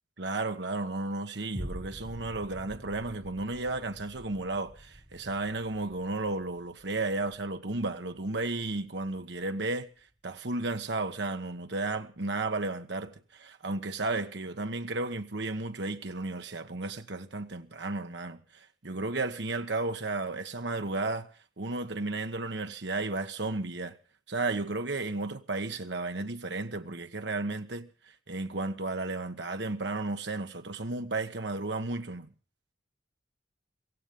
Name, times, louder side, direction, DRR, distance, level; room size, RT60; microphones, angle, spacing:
voice 1, 0.2-9.9 10.2-21.3 21.6-24.0 24.3-27.9 28.3-32.3, right 2 dB, 75° right, 1.4 m, -33 dB
sound 1, 1.6-10.1 10.6-10.7, equal, 15° right, 5.8 m, -47 dB
16.5 x 16.0 x 5.3 m
head